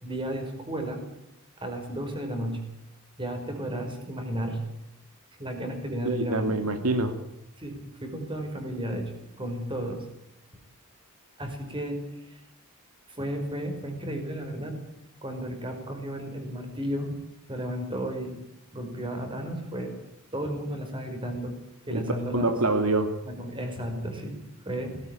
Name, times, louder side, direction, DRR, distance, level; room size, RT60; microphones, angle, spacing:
voice 1, 0.0-1.0 1.6-2.6 3.2-4.6 5.4-6.6 7.6-10.1 11.4-12.4 13.1-14.7 15.2-17.1 17.5-18.3 18.7-19.9 20.3-21.5 21.9-22.5 23.3-25.0, right 1 dB, 20° right, 5 dB, 5.1 m, -33 dB
voice 2, 6.0-7.1 21.9-22.0 22.3-23.1, right 2 dB, 80° right, 8 dB, 2.2 m, -25 dB
19.0 x 17.0 x 8.9 m, 0.83 s
head